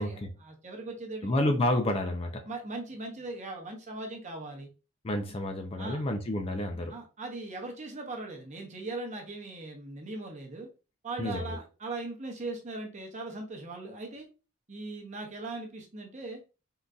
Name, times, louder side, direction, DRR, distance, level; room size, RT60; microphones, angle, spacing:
voice 1, 0.0-1.4 2.5-4.7 5.8-6.0 6.9-10.7 11.0-14.3 14.7-16.4, right 2 dB, 35° right, 0.8 m, -39 dB
voice 2, 1.2-2.4 5.0-6.9 11.2-11.6, left 1 dB, 25° left, 0.4 m, -29 dB
3.7 x 2.6 x 2.3 m
head